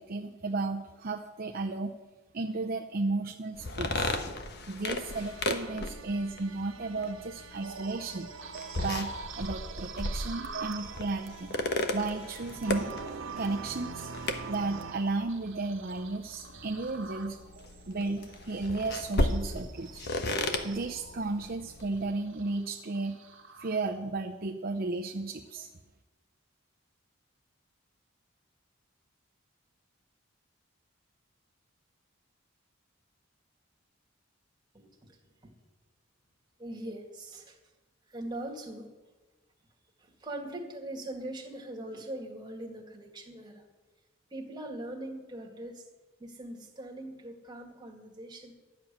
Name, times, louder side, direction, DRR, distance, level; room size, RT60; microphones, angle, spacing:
voice 1, 0.0-1.9 2.3-4.2 4.7-8.3 8.8-9.1 9.4-11.6 11.9-12.9 13.4-14.1 14.5-17.4 17.9-20.1 20.6-23.2 23.6-25.7, right 3 dB, 45° right, 2 dB, 0.7 m, -34 dB
sound 1, 3.5-22.1, left 2 dB, 55° left, 1.2 m, -36 dB
sound 2, 5.0-14.9, right 5 dB, 85° right, 0.9 m, -45 dB
sound 3, 7.6-24.3 24.7-24.9 25.5-25.6, right 5 dB, 65° right, 1.4 m, -47 dB
voice 2, 34.7-35.5 36.6-37.6 38.1-38.9 40.0-43.6 44.3-45.9 46.2-48.5, right 1 dB, 20° right, 1 dB, 2.1 m, -41 dB
13.5 x 7.2 x 10.0 m, 1.2 s
head